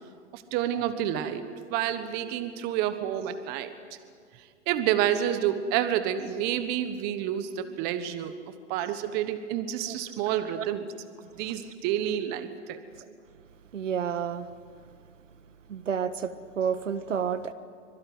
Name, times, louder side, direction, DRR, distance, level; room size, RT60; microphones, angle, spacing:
voice 1, 0.3-3.7 4.7-8.4 8.7-10.9 11.2-12.8, right 10 dB, 25° right, 11 dB, 1.3 m, -29 dB
voice 2, 13.7-14.5 15.7-17.5, right 7 dB, 75° right, 12 dB, 1.7 m, -30 dB
24.5 x 23.0 x 9.5 m, 2.1 s
hypercardioid pair, 140°, 38 cm